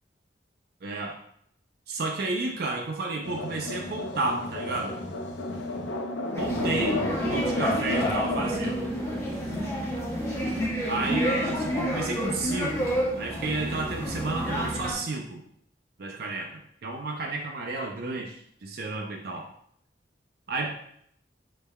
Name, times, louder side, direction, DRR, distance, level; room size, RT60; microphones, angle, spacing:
voice 1, 0.8-1.2 1.9-4.9 6.4-7.0 7.3-8.9 10.9-12.9 13.2-15.4 16.0-19.4 20.5-20.7, right 3 dB, 55° right, 1 dB, 0.5 m, -31 dB
sound 1, 3.2-8.4, left 2 dB, 70° left, 0.5 m, -33 dB
sound 2, 6.3-14.9, equal, 15° left, 1.0 m, -29 dB
5.3 x 4.1 x 2.2 m, 0.69 s
head